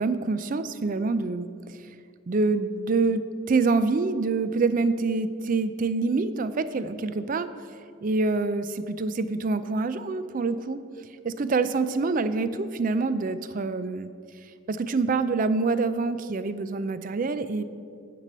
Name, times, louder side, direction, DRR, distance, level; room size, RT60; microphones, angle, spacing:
voice 1, 0.0-1.8 2.3-7.5 8.0-10.8 11.2-14.1 14.7-17.6, right 3 dB, 40° right, 13 dB, 0.4 m, -26 dB
10.5 x 5.2 x 6.6 m, 2.3 s
head